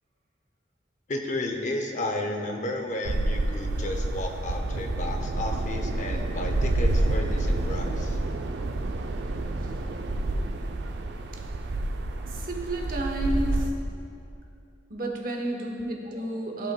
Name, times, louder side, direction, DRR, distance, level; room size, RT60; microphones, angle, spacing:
voice 1, 1.1-8.2, left 1 dB, 40° left, 3 dB, 0.6 m, -33 dB
sound 1, 3.0-13.7, right 2 dB, 70° right, 0.4 m, -28 dB
voice 2, 12.3-13.7 14.9-16.7, right 1 dB, 50° right, 1 dB, 0.9 m, -31 dB
14.5 x 5.3 x 2.2 m, 2.6 s
head